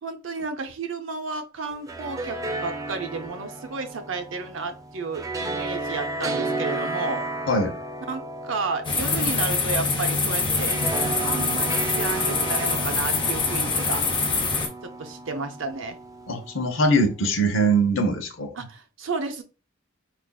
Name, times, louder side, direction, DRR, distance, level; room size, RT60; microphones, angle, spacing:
voice 1, 0.0-7.2 8.1-10.8 11.2-14.0 14.8-16.0 18.6-19.4, right 4 dB, 75° right, 7 dB, 0.6 m, -32 dB
sound 1, 1.7-16.9, right 2 dB, 20° right, 0.4 m, -33 dB
sound 2, 8.8-14.7, left 4 dB, 25° left, 0.7 m, -24 dB
voice 2, 16.3-18.5, right 1 dB, 80° left, 5 dB, 0.8 m, -22 dB
4.7 x 2.5 x 2.3 m, 0.33 s
head